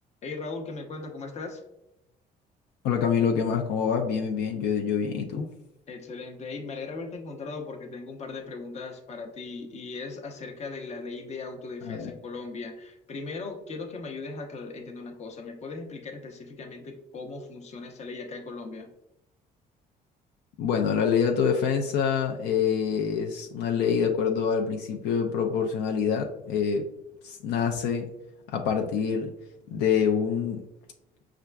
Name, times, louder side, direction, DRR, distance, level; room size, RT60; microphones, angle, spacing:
voice 1, 0.2-1.6 5.9-18.9, left 3 dB, 40° left, 3 dB, 0.7 m, -38 dB
voice 2, 2.8-5.5 11.8-12.1 20.6-26.8 27.2-28.1 28.5-29.3 29.7-30.6, left 7 dB, 75° left, 2 dB, 0.5 m, -26 dB
5.5 x 2.4 x 2.2 m, 0.87 s
cardioid pair, 110°, 17 cm